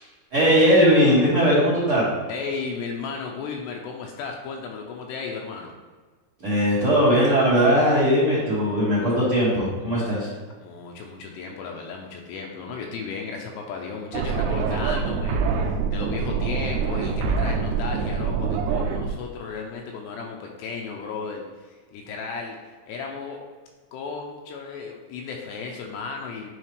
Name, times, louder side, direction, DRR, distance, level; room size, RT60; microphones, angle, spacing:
voice 1, 0.3-2.1 6.4-10.3, equal, 50° right, -9 dB, 1.8 m, -19 dB
voice 2, 2.3-5.7 10.6-23.4 23.9-26.5, left 5 dB, 80° left, 1 dB, 2.7 m, -34 dB
sound 1, 14.1-19.1, right 5 dB, 80° right, 2.4 m, -25 dB
10.0 x 3.9 x 3.2 m, 1.4 s
omnidirectional pair, 5.2 m